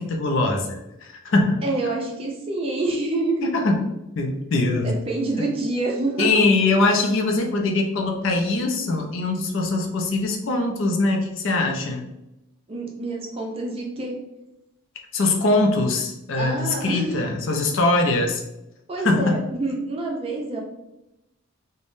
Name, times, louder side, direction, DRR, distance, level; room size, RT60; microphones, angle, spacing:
voice 1, 0.0-1.6 3.4-3.8 4.2-5.0 6.2-12.1 15.1-18.4 19.0-19.4, left 2 dB, 60° left, 2 dB, 0.4 m, -22 dB
voice 2, 1.6-3.5 4.8-6.3 12.7-14.2 16.3-17.2 18.9-20.6, right 2 dB, 25° right, -1 dB, 0.4 m, -27 dB
3.4 x 2.1 x 2.5 m, 0.92 s
head